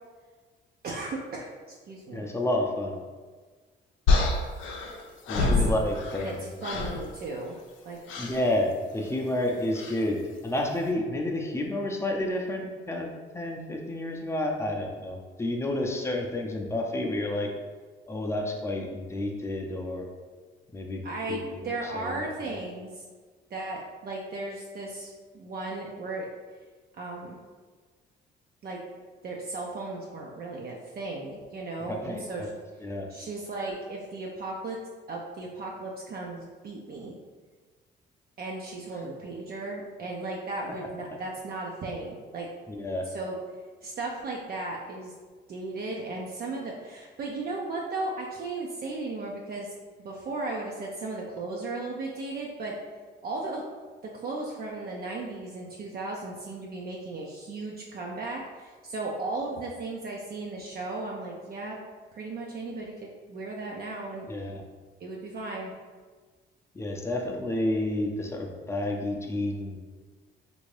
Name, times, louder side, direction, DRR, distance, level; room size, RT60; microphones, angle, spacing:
voice 1, 0.8-2.3 5.4-5.7 6.2-6.4 6.6-7.6 7.8-8.0 21.0-23.0 23.5-26.3 27.0-27.4 28.6-28.8 29.2-32.5 33.1-34.8 35.1-37.1 38.4-42.5 43.0-43.4 43.8-45.1 45.5-52.7 53.2-53.6 54.1-61.8 62.1-64.3 65.0-65.7, right 2 dB, 50° right, -2 dB, 0.5 m, -36 dB
voice 2, 2.1-3.0 5.3-6.4 8.2-13.1 13.3-17.5 18.1-20.1 20.7-21.0 21.3-22.6 31.8-32.2 32.8-33.1 42.8-43.1 64.3-64.6 66.7-69.8, left 1 dB, 15° left, 1 dB, 0.5 m, -30 dB
sound 1, 4.1-6.3 6.6-7.0 8.1-8.4 9.7-10.0, left 3 dB, 80° left, 0.5 m, -26 dB
3.4 x 2.6 x 3.2 m, 1.4 s
cardioid pair, 90°, 20 cm